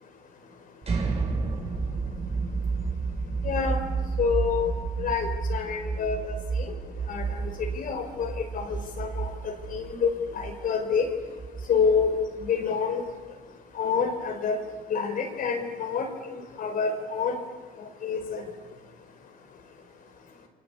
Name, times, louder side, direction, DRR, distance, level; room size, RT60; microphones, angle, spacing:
sound 1, 0.8-12.6, right 4 dB, 35° right, 6.9 m, -31 dB
voice 1, 3.4-3.8 4.2-4.7 5.0-6.3 7.1-7.5 7.7-11.0 11.7-12.1 12.4-13.0 13.8-14.6 14.9-17.4 18.0-18.4, left 6 dB, 55° left, 4 dB, 5.0 m, -27 dB
29.0 x 24.0 x 8.6 m, 1.3 s
cardioid pair, 110°, 17 cm